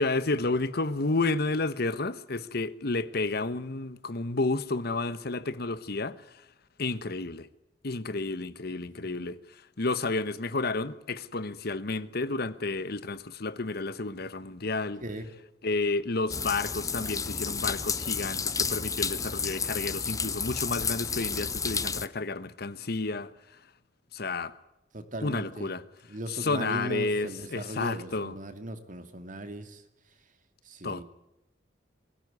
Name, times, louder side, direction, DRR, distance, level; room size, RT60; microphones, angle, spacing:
voice 1, 0.0-6.4 6.8-7.5 7.8-15.0 15.6-23.3 24.1-24.5 25.2-25.8 26.3-28.3 30.8-31.0, left 3 dB, 60° left, 1.1 m, -31 dB
voice 2, 8.8-9.1 15.0-15.3 24.9-25.7 26.1-29.8 30.6-31.0, right 1 dB, 45° right, 2.5 m, -38 dB
sound 1, 16.3-22.1, left 5 dB, 20° left, 0.8 m, -31 dB
23.0 x 16.0 x 9.6 m
head